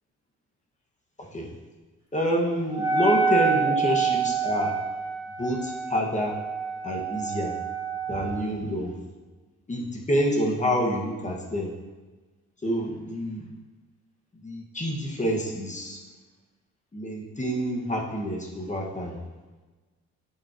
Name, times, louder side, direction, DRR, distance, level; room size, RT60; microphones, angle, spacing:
voice 1, 2.1-4.7 5.4-6.4 6.8-7.5 8.1-8.9 9.7-11.7 12.6-13.5 14.4-16.0 16.9-19.2, equal, 25° left, -1 dB, 1.9 m, -27 dB
Wind instrument woodwind instrument, 2.7-8.5, right 6 dB, 15° right, 2.6 m, -27 dB
10.5 x 7.6 x 3.1 m, 1.3 s
cardioid pair, 90°, 30 cm